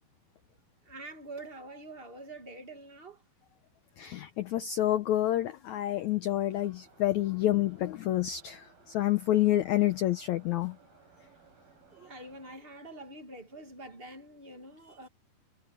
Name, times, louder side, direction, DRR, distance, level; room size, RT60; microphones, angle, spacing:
voice 1, 0.8-3.2 11.9-15.1, right 2 dB, 25° right, 1.2 m, -46 dB
voice 2, 4.0-10.7, left 13 dB, 90° left, 1.6 m, -28 dB
Subway metro underground, 6.5-12.6, right 4 dB, 65° right, 8.0 m, -60 dB
omnidirectional pair, 4.4 m